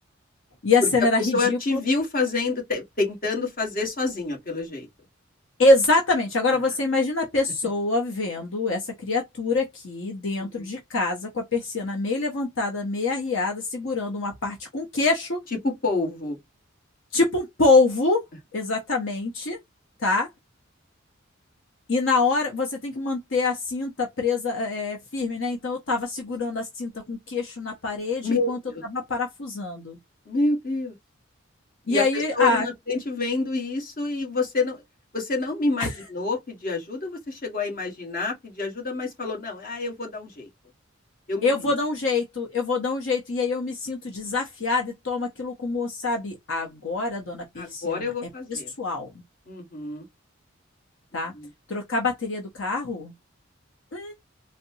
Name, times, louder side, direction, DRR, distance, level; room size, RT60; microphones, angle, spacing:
voice 1, 0.6-1.8 5.6-15.4 17.1-18.3 18.5-19.6 20.0-20.3 21.9-28.6 28.9-30.0 31.9-32.7 35.8-35.9 41.4-48.1 48.5-49.1 51.1-51.3 51.7-53.1 53.9-54.1, left 3 dB, 65° left, 0.9 m, -25 dB
voice 2, 1.2-4.9 10.4-10.6 15.6-16.4 28.2-28.8 30.3-30.9 31.9-34.8 35.1-40.5 41.3-41.7 47.6-48.7 49.5-50.0 51.3-51.5, left 3 dB, 45° left, 1.4 m, -28 dB
4.1 x 2.1 x 2.7 m
head